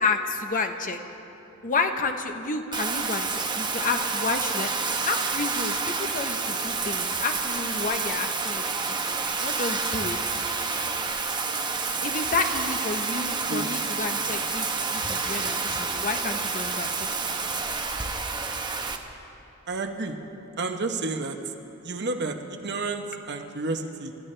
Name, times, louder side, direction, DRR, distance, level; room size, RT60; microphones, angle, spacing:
voice 1, 0.0-1.0 1.6-4.7 5.1-10.2 12.0-17.1, left 4 dB, 40° left, 6 dB, 0.9 m, -30 dB
Bathtub (filling or washing), 2.7-19.0, right 4 dB, 20° right, 0.9 m, -29 dB
voice 2, 19.7-20.2 20.6-21.4 21.8-24.1, right 3 dB, 55° right, 4 dB, 1.1 m, -30 dB
29.0 x 13.5 x 3.3 m, 2.9 s
head